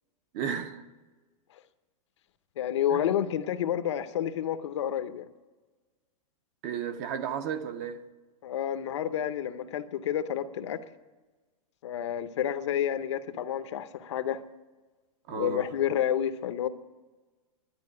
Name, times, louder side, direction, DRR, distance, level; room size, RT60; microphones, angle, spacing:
voice 1, 0.3-0.8 2.9-3.1 6.6-8.0 15.3-15.7, right 8 dB, 25° right, 0.7 m, -33 dB
voice 2, 2.6-5.2 8.4-10.8 11.8-14.4 15.3-16.7, left 10 dB, 50° left, 0.8 m, -29 dB
11.5 x 10.0 x 9.7 m
supercardioid pair, 180°, 19 cm